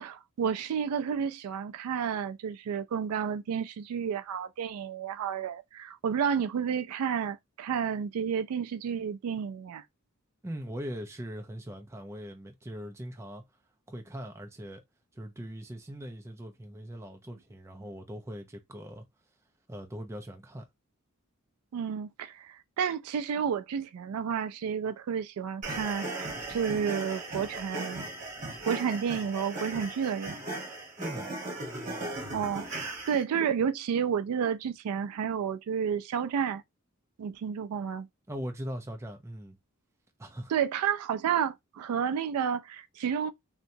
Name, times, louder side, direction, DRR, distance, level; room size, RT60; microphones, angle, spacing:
voice 1, 0.0-9.8 21.7-28.0 28.6-30.7 32.3-36.6 37.2-38.1 40.5-43.3, right 7 dB, 85° right, 0.3 m, -31 dB
voice 2, 10.4-13.4 13.9-14.8 15.1-19.0 19.7-20.7 31.0-31.3 38.3-39.6 40.2-40.5, equal, 15° right, 0.4 m, -40 dB
sound 1, 25.6-33.2, right 2 dB, 35° right, 1.1 m, -37 dB
2.8 x 2.1 x 2.6 m
head